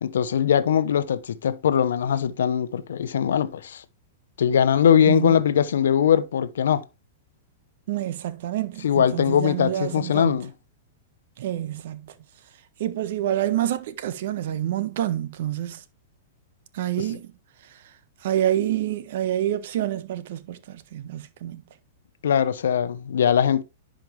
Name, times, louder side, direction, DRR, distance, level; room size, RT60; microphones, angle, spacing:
voice 1, 0.0-3.8 4.4-6.8 8.8-10.5 17.0-17.1 22.2-23.6, left 8 dB, 75° left, 0.8 m, -21 dB
voice 2, 5.1-5.4 7.9-10.4 11.4-12.1 12.8-15.8 16.7-17.3 18.2-21.6, right 12 dB, 65° right, 1.3 m, -27 dB
10.5 x 5.0 x 3.3 m
hypercardioid pair, 120°, 0 cm